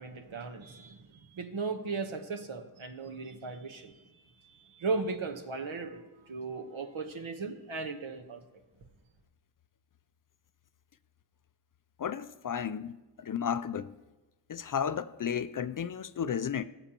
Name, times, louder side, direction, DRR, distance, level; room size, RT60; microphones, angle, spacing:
voice 1, 0.0-8.4, right 4 dB, 70° right, 1.2 m, -37 dB
voice 2, 12.0-14.0 14.5-16.6, left 8 dB, 45° left, 0.4 m, -33 dB
17.5 x 7.2 x 2.9 m
cardioid pair, 60°, 49 cm